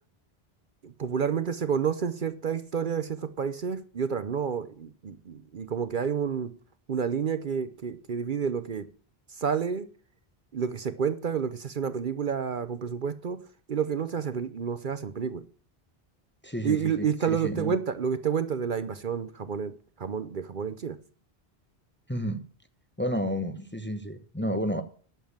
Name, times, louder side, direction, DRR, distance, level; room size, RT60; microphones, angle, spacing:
voice 1, 0.8-6.5 6.9-8.9 9.4-9.9 10.5-13.4 13.7-15.4 16.6-21.0, right 7 dB, 55° right, 0.9 m, -29 dB
voice 2, 16.4-17.8 22.1-22.4 23.0-24.8, equal, 10° left, 1.0 m, -31 dB
10.5 x 7.2 x 7.3 m
omnidirectional pair, 1.1 m